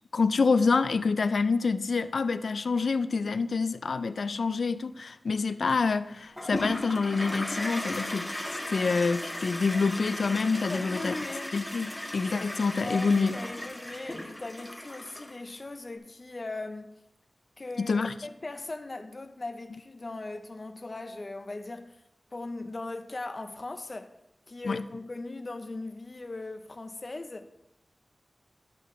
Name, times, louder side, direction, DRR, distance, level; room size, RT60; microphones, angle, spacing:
voice 1, 0.1-8.3 8.7-11.1 11.5-13.4 17.8-18.1 24.6-24.8, left 4 dB, 80° left, 0.4 m, -27 dB
Toilet flush, 6.4-15.6, left 1 dB, 10° left, 1.6 m, -37 dB
voice 2, 10.7-11.6 12.8-16.9 17.6-22.0 22.3-24.1 24.5-27.5, left 2 dB, 45° left, 0.8 m, -39 dB
11.5 x 6.7 x 3.3 m
wide cardioid pair, 65°, 0 cm